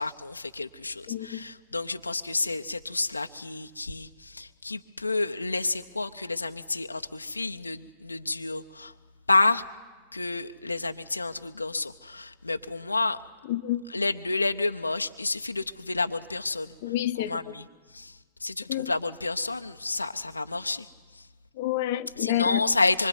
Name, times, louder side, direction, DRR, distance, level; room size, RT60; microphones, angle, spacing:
voice 1, 0.0-8.9 9.3-9.6 10.1-13.2 13.9-16.7 17.3-17.6 17.9-20.9 22.2-23.1, left 3 dB, 80° left, 0.7 m, -29 dB
voice 2, 1.1-1.4 13.5-13.8 16.8-17.5 18.7-18.9 21.6-22.6, left 14 dB, 50° left, 0.9 m, -28 dB
25.0 x 24.5 x 9.5 m
figure-of-eight pair, 90°, 0 cm